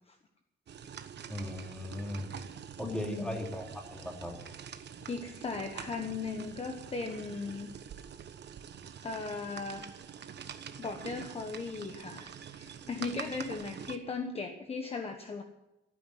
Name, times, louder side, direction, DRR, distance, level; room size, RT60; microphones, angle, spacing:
sound 1, 0.7-14.0, right 8 dB, 60° right, 1.2 m, -46 dB
voice 1, 1.3-2.3 2.8-4.3, left 1 dB, 5° left, 1 dB, 3.1 m, -37 dB
voice 2, 2.8-3.4 5.1-7.7 9.0-9.9 10.8-15.4, left 4 dB, 30° left, 5 dB, 1.2 m, -37 dB
16.5 x 9.4 x 9.4 m, 0.98 s
wide cardioid pair, 165°, 20 cm